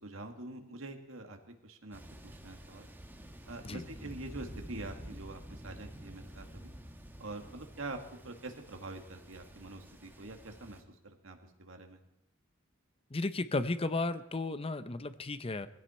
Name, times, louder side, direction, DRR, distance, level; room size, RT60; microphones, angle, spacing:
voice 1, 0.0-2.9 3.5-6.7 7.2-8.0 8.2-12.0, right 2 dB, 75° right, 5 dB, 2.1 m, -45 dB
Thunder, 1.9-10.8, equal, 10° right, 1.5 m, -50 dB
voice 2, 13.1-15.7, left 2 dB, 30° left, 12 dB, 0.8 m, -34 dB
20.5 x 16.0 x 4.4 m, 0.85 s
head